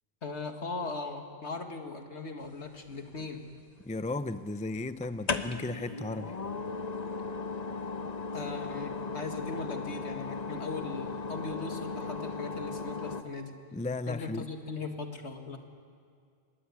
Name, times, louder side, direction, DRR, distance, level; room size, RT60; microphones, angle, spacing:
voice 1, 0.2-3.4 8.3-13.5 14.1-15.6, left 3 dB, 70° left, 5 dB, 2.3 m, -39 dB
sound 1, 2.8-3.6 5.0-13.2, left 4 dB, 35° left, 1.1 m, -36 dB
voice 2, 3.8-6.3 13.7-14.5, left 2 dB, 10° left, 11 dB, 0.5 m, -35 dB
25.0 x 21.0 x 9.8 m, 2.2 s
omnidirectional pair, 1.2 m